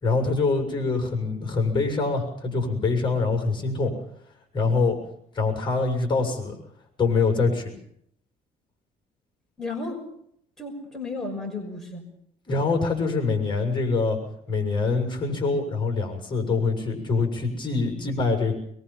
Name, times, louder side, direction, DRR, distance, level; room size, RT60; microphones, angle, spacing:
voice 1, 0.0-3.9 4.5-5.0 5.3-6.6 7.0-7.7 12.5-14.2 14.5-18.5, left 4 dB, 25° left, 5 dB, 6.8 m, -24 dB
voice 2, 9.6-10.0 10.6-12.1 18.0-18.2, left 3 dB, 5° left, -1 dB, 6.1 m, -33 dB
23.5 x 22.5 x 5.8 m, 0.69 s
cardioid pair, 110°, 17 cm